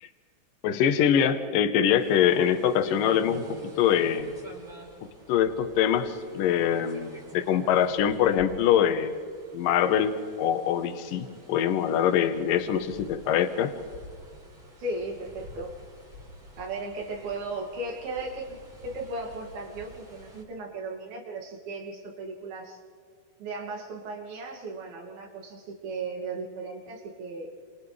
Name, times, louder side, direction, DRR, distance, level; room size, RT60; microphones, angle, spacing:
voice 1, 0.6-4.3 5.3-9.2 9.5-13.7, left 9 dB, 65° left, 8 dB, 2.5 m, -24 dB
sound 1, 2.0-20.4, right 1 dB, 25° right, 6.3 m, -49 dB
voice 2, 14.8-15.7 16.6-18.6 18.8-22.8 23.4-27.5, right 2 dB, 65° right, 0 dB, 4.3 m, -36 dB
28.5 x 28.5 x 3.4 m, 2.1 s
omnidirectional pair, 4.7 m